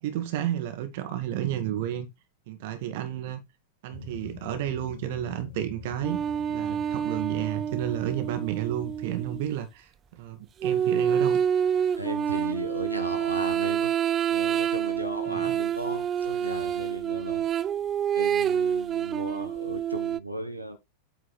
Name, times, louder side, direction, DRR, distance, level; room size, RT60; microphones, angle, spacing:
voice 1, 0.0-2.1 2.5-3.4 3.8-6.2 6.5-11.4 15.3-15.6, right 11 dB, 50° right, 1.5 m, -32 dB
sound 1, 3.9-9.4, left 2 dB, 60° left, 2.9 m, -45 dB
sound 2, 6.0-9.5 10.6-20.2, right 9 dB, 25° right, 0.4 m, -27 dB
voice 2, 11.9-13.9 14.3-17.5 18.1-20.8, right 1 dB, 90° right, 1.5 m, -35 dB
8.3 x 4.6 x 4.0 m
figure-of-eight pair, 90°, 0 cm